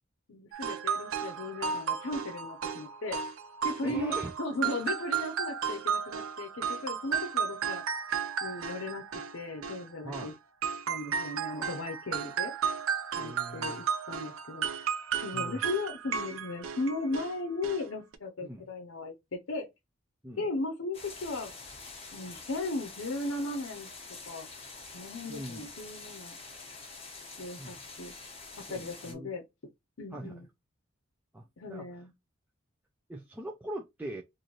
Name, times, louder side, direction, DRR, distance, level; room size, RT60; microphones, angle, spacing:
voice 1, 0.3-3.2 3.6-7.8 8.4-9.1 9.3-10.3 10.9-12.5 13.1-14.9 15.1-19.7 20.4-21.5 22.1-23.9 24.2-24.5 24.9-26.4 27.4-28.1 28.6-29.4 30.0-30.5 31.6-32.1, left 2 dB, 75° left, 0.6 m, -37 dB
sound 1, 0.5-10.3 10.6-17.3 17.6-17.8 18.1-18.2, right 7 dB, 85° right, 0.5 m, -34 dB
voice 2, 3.8-4.3 10.0-10.3 13.2-13.8 15.3-15.6 18.4-18.7 20.2-20.4 25.3-25.7 27.6-27.8 28.7-29.3 30.1-30.4 31.3-31.9 33.1-34.2, right 1 dB, 10° right, 0.4 m, -41 dB
sound 2, 20.9-29.1, left 3 dB, 30° left, 0.9 m, -46 dB
3.1 x 2.5 x 3.9 m
head